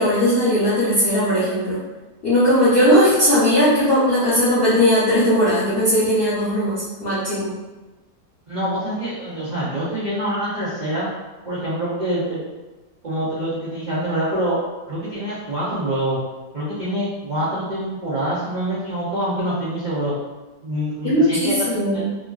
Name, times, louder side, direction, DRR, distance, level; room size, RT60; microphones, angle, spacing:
voice 1, 0.0-1.8 2.2-7.5 21.0-22.1, equal, 45° left, -10 dB, 0.8 m, -18 dB
voice 2, 8.5-11.1 11.4-12.4 13.0-14.6 14.9-16.2 16.5-20.1 20.6-22.0, right 1 dB, 75° right, -10 dB, 0.4 m, -25 dB
3.0 x 2.5 x 2.3 m, 1.2 s
omnidirectional pair, 1.8 m